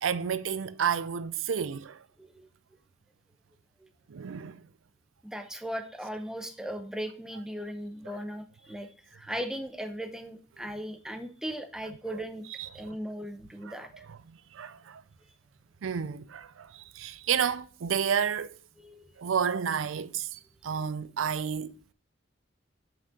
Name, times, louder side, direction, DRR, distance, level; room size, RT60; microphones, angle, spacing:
voice 1, 0.0-2.0 4.1-4.6 12.6-12.9 13.7-13.8 14.5-15.0 15.8-18.6 19.2-21.7, right 7 dB, 85° right, 0.5 m, -31 dB
voice 2, 5.2-12.4 12.7-14.1 18.8-19.0 20.7-20.9, equal, 5° right, 0.7 m, -38 dB
5.9 x 5.3 x 3.9 m
head